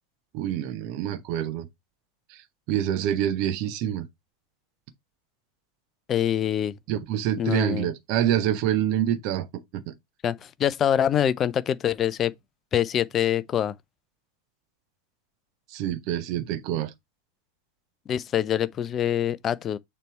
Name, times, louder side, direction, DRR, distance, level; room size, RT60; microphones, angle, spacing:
voice 1, 0.3-1.7 2.7-4.1 6.9-9.5 9.7-9.9 15.7-16.9, right 11 dB, 45° right, 0.8 m, -26 dB
voice 2, 6.1-6.8 7.4-7.9 10.2-12.3 12.7-13.7 18.1-19.8, left 10 dB, 25° left, 0.4 m, -25 dB
6.7 x 3.2 x 4.6 m
figure-of-eight pair, 90°, 0 cm